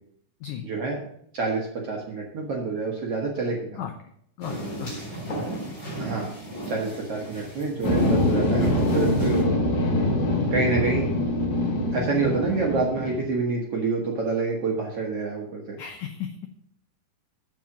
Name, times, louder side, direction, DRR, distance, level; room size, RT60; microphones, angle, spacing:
voice 1, 0.6-1.0 1.3-3.8 6.0-6.3 6.7-9.5 10.5-11.1 11.9-15.8, right 4 dB, 60° right, -2 dB, 1.6 m, -27 dB
voice 2, 4.4-4.9 5.2-5.4 15.8-16.4, left 9 dB, 90° left, 5 dB, 1.7 m, -35 dB
sound 1, 4.4-9.4, right 1 dB, 20° left, 3.8 m, -35 dB
sound 2, 7.8-13.2, left 1 dB, 70° left, 3.5 m, -24 dB
7.4 x 7.1 x 6.0 m, 0.69 s
omnidirectional pair, 4.4 m